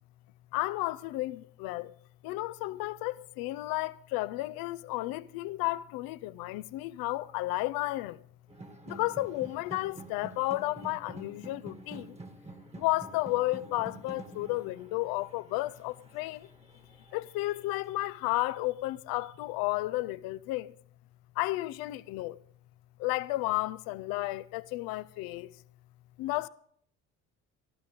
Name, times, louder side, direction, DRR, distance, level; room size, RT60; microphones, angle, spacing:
voice 1, 0.5-1.9 2.2-8.2 8.9-12.2 12.8-16.5 17.1-20.7 21.4-22.4 23.0-25.5 26.2-26.5, left 18 dB, 75° left, 0.7 m, -32 dB
sound 1, 8.5-17.4, right 2 dB, 20° right, 1.6 m, -48 dB
13.5 x 12.5 x 5.2 m
hypercardioid pair, 65°, 35 cm